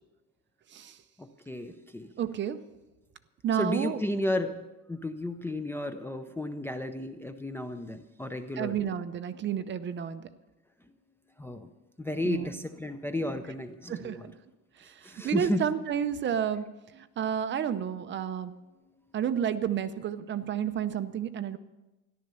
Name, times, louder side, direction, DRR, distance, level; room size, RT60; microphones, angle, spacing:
voice 1, 1.2-2.1 3.6-4.6 4.9-8.8 11.4-11.7 12.0-14.3 15.0-15.6, left 1 dB, 5° left, 6 dB, 0.5 m, -33 dB
voice 2, 2.2-2.6 3.4-4.0 8.6-10.3 12.2-12.6 13.9-14.3 14.8-16.7 16.9-18.5 19.1-21.6, right 9 dB, 35° right, 11 dB, 0.7 m, -31 dB
14.0 x 11.5 x 6.9 m, 1.0 s
cardioid pair, 155°, 33 cm